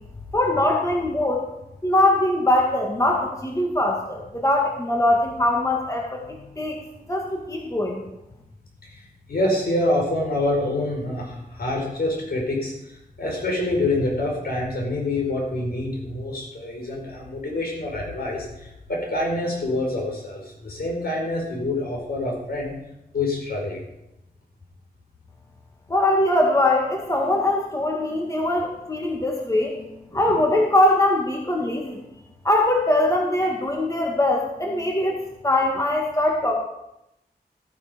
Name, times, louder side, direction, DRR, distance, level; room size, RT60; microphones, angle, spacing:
voice 1, 0.3-1.4 1.8-6.8 7.1-8.0 25.9-32.0 32.4-35.2 35.4-36.5, left 1 dB, 20° left, 0 dB, 1.9 m, -22 dB
voice 2, 8.8-22.7 23.1-23.8, left 2 dB, 70° left, 0 dB, 4.9 m, -26 dB
15.0 x 9.9 x 5.2 m, 0.86 s
wide cardioid pair, 95°, 17 cm